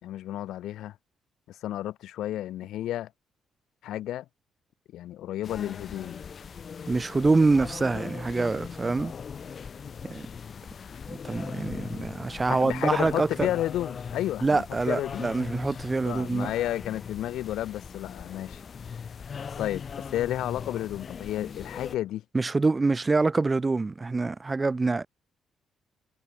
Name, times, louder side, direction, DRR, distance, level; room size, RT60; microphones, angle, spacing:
voice 1, 0.0-0.9 1.5-3.1 3.8-4.2 4.9-6.2 12.5-15.3 16.0-18.6 19.6-19.8 20.1-22.2, left 13 dB, 80° left, 4.4 m, -32 dB
sound 1, 5.4-22.0, left 6 dB, 50° left, 3.3 m, -40 dB
voice 2, 6.9-9.1 10.1-10.3 11.1-13.5 14.4-16.5 22.3-25.1, right 3 dB, 25° right, 1.8 m, -25 dB
cardioid pair, 80°, 0 cm